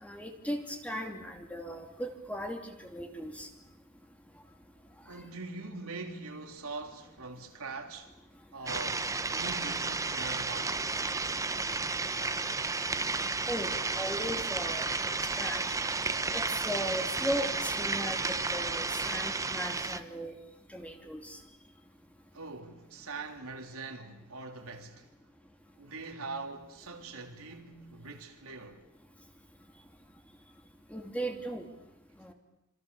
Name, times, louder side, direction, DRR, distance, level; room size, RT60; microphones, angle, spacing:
voice 1, 0.0-3.5 13.5-15.6 16.3-20.4 20.7-21.4 30.9-31.7 32.2-32.3, equal, 5° left, 2.8 m, -37 dB
voice 2, 5.0-8.1 8.5-10.8 22.3-25.1 25.8-28.8, right 3 dB, 75° right, 3.3 m, -43 dB
sound 1, 8.7-20.0, right 3 dB, 15° right, 0.9 m, -32 dB
27.0 x 26.5 x 7.0 m
head